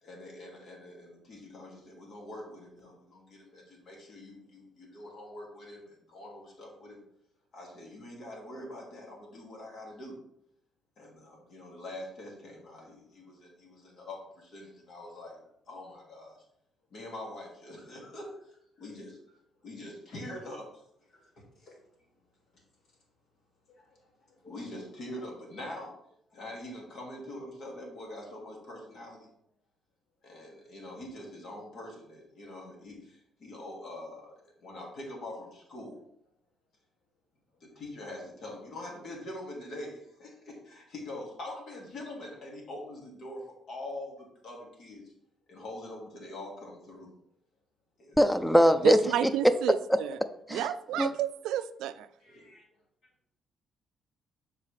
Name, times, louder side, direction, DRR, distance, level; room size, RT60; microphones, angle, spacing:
voice 1, 0.0-7.0 7.5-10.2 11.0-16.4 16.9-19.2 19.6-20.8 21.1-21.2 21.5-21.7 23.7-24.0 24.3-25.9 26.3-29.3 30.2-36.0 37.6-45.1 45.5-47.1 48.0-48.2 50.6-51.1 52.2-52.6, left 1 dB, 65° left, -1 dB, 2.4 m, -44 dB
voice 2, 48.2-49.5 49.9-50.0 50.5-50.7 51.0-51.1, equal, 5° left, 11 dB, 0.5 m, -22 dB
voice 3, 48.8-50.2 50.5-52.1, right 11 dB, 90° right, 13 dB, 0.3 m, -31 dB
7.2 x 4.7 x 3.3 m, 0.73 s
cardioid pair, 90°, 0 cm